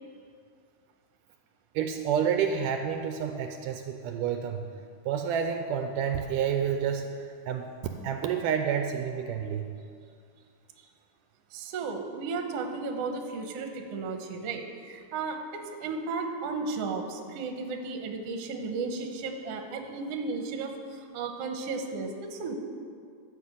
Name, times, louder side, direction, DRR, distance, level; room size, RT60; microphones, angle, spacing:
voice 1, 1.8-4.7 5.1-7.1 7.5-7.7 8.0-9.7, right 8 dB, 80° right, 5 dB, 2.1 m, -29 dB
voice 2, 11.5-22.5, right 4 dB, 65° right, 4 dB, 1.7 m, -34 dB
12.5 x 5.8 x 7.9 m, 2.2 s
omnidirectional pair, 3.9 m